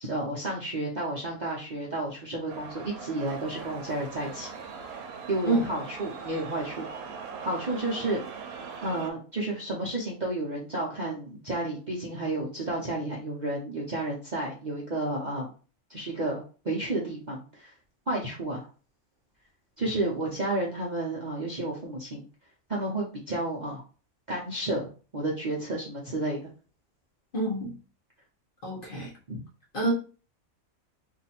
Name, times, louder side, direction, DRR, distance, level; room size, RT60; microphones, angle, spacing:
voice 1, 0.0-4.5 5.3-6.9 7.4-8.2 8.8-15.5 15.9-17.7 18.1-18.7 19.8-22.3 22.7-23.8 24.3-26.4 29.3-29.4, right 2 dB, 40° right, 0.7 m, -31 dB
sound 1, 2.5-9.1, right 5 dB, 85° right, 1.1 m, -40 dB
voice 2, 27.3-27.8 28.6-29.1 29.7-29.9, right 2 dB, 40° left, 1.0 m, -27 dB
2.8 x 2.5 x 4.2 m
omnidirectional pair, 1.5 m